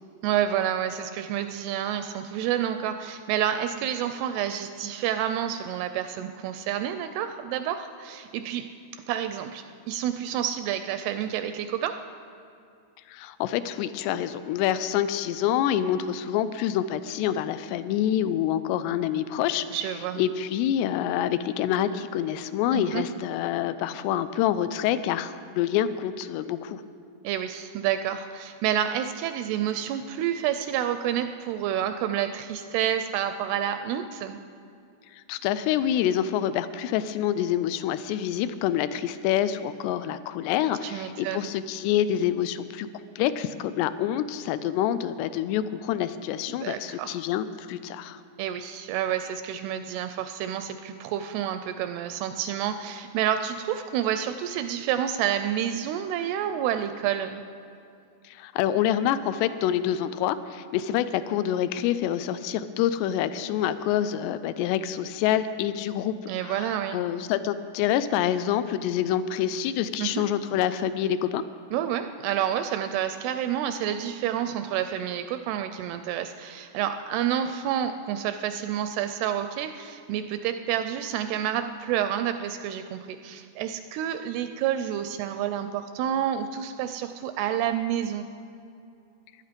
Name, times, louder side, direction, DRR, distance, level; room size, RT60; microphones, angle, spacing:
voice 1, 0.2-8.7 9.1-12.0 19.7-20.2 22.7-23.1 27.2-34.4 40.8-41.5 46.5-47.2 48.4-57.4 66.3-67.0 70.0-70.2 71.7-88.3, right 10 dB, 85° right, 9 dB, 2.3 m, -29 dB
voice 2, 13.1-19.7 20.2-26.8 35.1-42.9 43.2-48.2 58.2-71.4, left 10 dB, 85° left, 13 dB, 2.6 m, -27 dB
17.0 x 11.5 x 5.1 m, 2.6 s
omnidirectional pair, 5.0 m